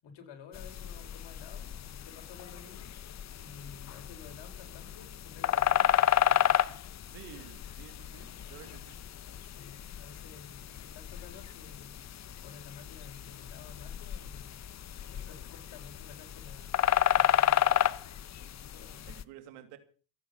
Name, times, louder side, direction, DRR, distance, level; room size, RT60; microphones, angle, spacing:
voice 1, 0.0-2.9 3.3-6.9 9.5-12.0 12.4-14.5 15.0-16.7 17.1-18.0 18.6-19.2, left 6 dB, 60° left, 4 dB, 6.1 m, -52 dB
sound 1, 0.5-19.2, left 11 dB, 35° left, 0.8 m, -32 dB
voice 2, 7.1-9.0 19.1-19.8, right 10 dB, 80° right, 10 dB, 2.9 m, -51 dB
28.0 x 9.3 x 5.5 m, 0.39 s
supercardioid pair, 100°, 50 cm